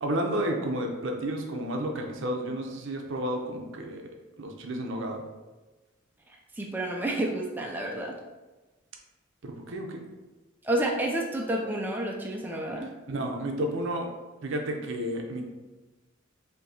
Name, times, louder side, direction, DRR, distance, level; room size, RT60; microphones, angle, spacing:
voice 1, 0.0-4.0 4.4-5.2 9.4-10.0 13.1-14.1 14.4-15.4, right 1 dB, 65° right, 2 dB, 0.6 m, -31 dB
voice 2, 6.5-8.1 10.6-12.9, right 1 dB, 10° right, -1 dB, 0.3 m, -30 dB
4.4 x 2.7 x 2.7 m, 1.2 s
head